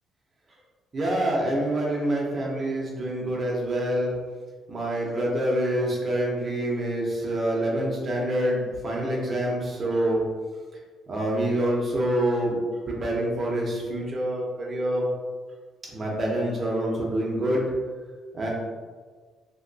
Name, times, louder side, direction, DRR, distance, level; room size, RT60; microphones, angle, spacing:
voice 1, 0.9-4.1 4.7-10.2 11.1-12.6 12.9-15.1 15.9-17.7 18.3-18.5, right 1 dB, 25° right, -3 dB, 0.7 m, -26 dB
2.9 x 2.8 x 2.7 m, 1.5 s
cardioid pair, 155°, 0 cm